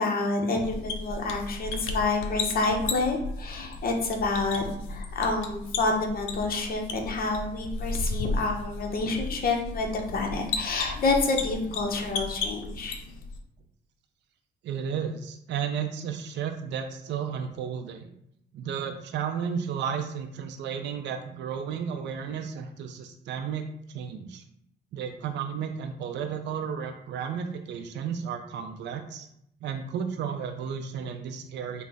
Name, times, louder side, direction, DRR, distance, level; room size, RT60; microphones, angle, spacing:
voice 1, 0.0-13.0, left 3 dB, 50° left, 2 dB, 0.7 m, -28 dB
sound 1, 0.6-13.4, left 3 dB, 90° left, 0.5 m, -35 dB
voice 2, 14.6-18.1 18.5-24.4 24.9-29.3 29.6-31.8, right 7 dB, 65° right, 6 dB, 0.4 m, -33 dB
3.9 x 2.0 x 3.4 m, 0.75 s
cardioid pair, 90°, 20 cm